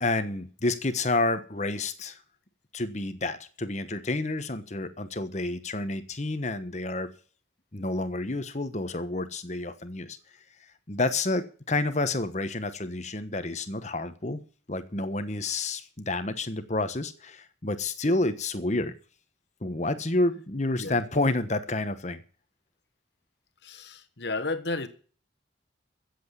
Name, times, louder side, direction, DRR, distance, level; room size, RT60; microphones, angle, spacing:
voice 1, 0.0-2.2 2.7-7.1 7.7-10.2 10.9-18.9 19.6-22.2, left 2 dB, 35° left, 1.2 m, -29 dB
voice 2, 23.6-24.9, left 3 dB, 60° left, 1.4 m, -32 dB
14.5 x 8.0 x 7.1 m
head